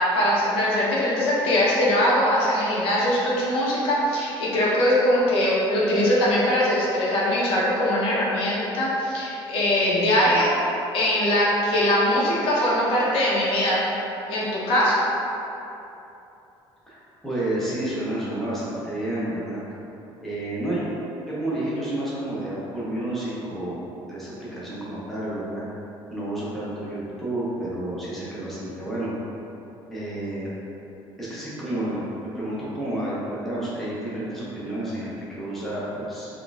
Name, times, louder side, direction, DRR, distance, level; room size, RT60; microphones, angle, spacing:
voice 1, 0.0-10.5 10.9-13.8 14.3-15.0, left 1 dB, 70° left, -6 dB, 0.9 m, -21 dB
voice 2, 16.9-19.6 20.2-20.9 21.3-25.6 26.1-29.1 29.9-30.5 31.2-36.3, right 1 dB, ahead, -9 dB, 0.6 m, -30 dB
4.1 x 2.4 x 3.4 m, 2.9 s
cardioid pair, 175°, 10 cm